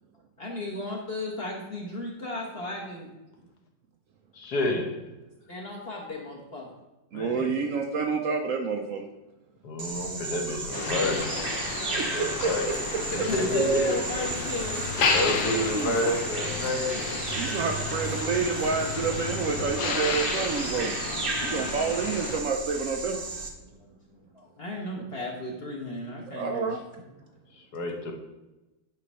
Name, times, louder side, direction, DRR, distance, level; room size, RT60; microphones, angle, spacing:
voice 1, 0.4-3.1 5.5-6.7 13.1-14.9 23.0-23.1 23.6-27.1, left 2 dB, 40° left, -2 dB, 1.1 m, -36 dB
voice 2, 4.3-4.9 7.1-7.5 9.6-11.3 11.9-12.7 13.1-14.0 15.1-17.2 21.5-21.8 27.5-28.1, left 2 dB, 65° left, 2 dB, 1.5 m, -29 dB
voice 3, 7.1-9.0 12.2-12.5 13.2-13.3 13.5-13.9 15.5-16.0 17.3-20.9 21.4-23.2 26.3-26.8, right 5 dB, 75° right, 4 dB, 0.7 m, -28 dB
Bird vocalization bird call bird song, 9.8-23.5, right 3 dB, 40° right, 0.8 m, -34 dB
Motor vehicle (road), 10.7-22.4, left 4 dB, 80° left, 1.5 m, -32 dB
9.4 x 3.1 x 5.4 m, 1.0 s
omnidirectional pair, 2.0 m